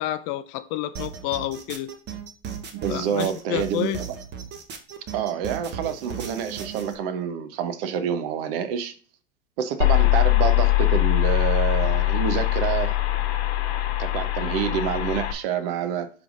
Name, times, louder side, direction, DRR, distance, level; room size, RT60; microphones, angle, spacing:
voice 1, 0.0-1.9 2.9-4.0, left 13 dB, 40° left, 0.4 m, -29 dB
sound 1, 0.9-6.9, right 7 dB, 30° right, 1.0 m, -36 dB
voice 2, 2.7-3.9 5.1-8.9 9.6-13.0 14.0-16.1, right 8 dB, 55° right, 0.9 m, -27 dB
sound 2, 9.8-15.3, left 18 dB, 65° left, 1.0 m, -22 dB
10.5 x 3.5 x 2.5 m
hypercardioid pair, 105°, 34 cm